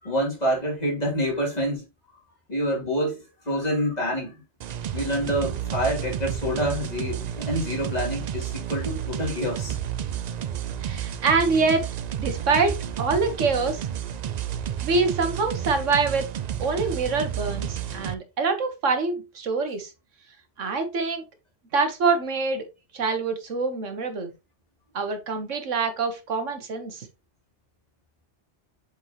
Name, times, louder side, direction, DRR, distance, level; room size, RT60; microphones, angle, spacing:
voice 1, 0.0-1.8 2.5-4.3 4.9-9.8, equal, 35° left, 2.9 m, -27 dB
sound 1, 4.6-18.1, right 10 dB, 70° right, 0.4 m, -31 dB
voice 2, 10.8-11.9 12.2-13.8 14.8-16.3 16.6-19.9 20.6-21.2 21.7-22.6 22.9-24.3 24.9-27.0, right 4 dB, 90° right, 1.6 m, -25 dB
7.5 x 4.7 x 2.9 m
omnidirectional pair, 1.2 m